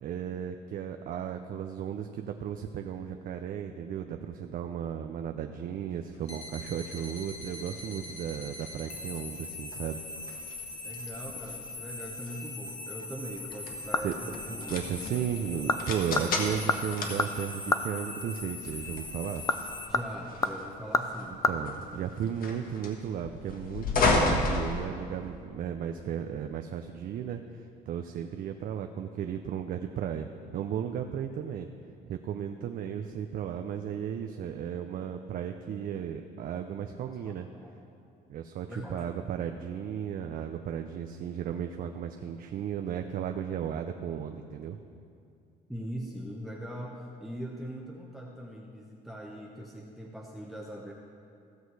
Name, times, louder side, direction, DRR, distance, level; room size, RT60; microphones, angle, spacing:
voice 1, 0.0-10.0 14.0-14.1 14.7-19.4 21.5-30.3 30.5-31.7 32.1-37.5 38.3-44.8, right 9 dB, 55° right, 5 dB, 0.5 m, -35 dB
sound 1, 6.1-25.4, left 2 dB, 60° left, 1.4 m, -35 dB
sound 2, 6.2-19.9, left 3 dB, 40° left, 2.0 m, -41 dB
voice 2, 10.8-14.8 19.9-22.1 37.2-37.7 38.7-39.1 45.7-50.9, equal, ahead, -1 dB, 0.9 m, -41 dB
sound 3, 13.4-14.3 14.7-14.8 15.4-15.8 16.1-17.9 19.2-21.6 21.8-21.9, left 3 dB, 20° left, 0.5 m, -30 dB
16.0 x 6.3 x 4.7 m, 2.5 s
cardioid pair, 110°, 17 cm